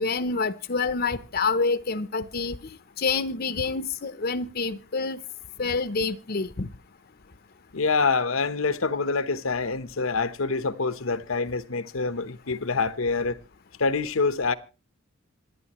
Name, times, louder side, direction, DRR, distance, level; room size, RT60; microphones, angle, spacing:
voice 1, 0.0-2.6 3.0-5.2 5.6-6.7, left 4 dB, 50° left, 0.8 m, -27 dB
voice 2, 7.7-13.4 13.8-14.5, left 4 dB, 80° left, 1.0 m, -26 dB
27.0 x 9.7 x 3.1 m
head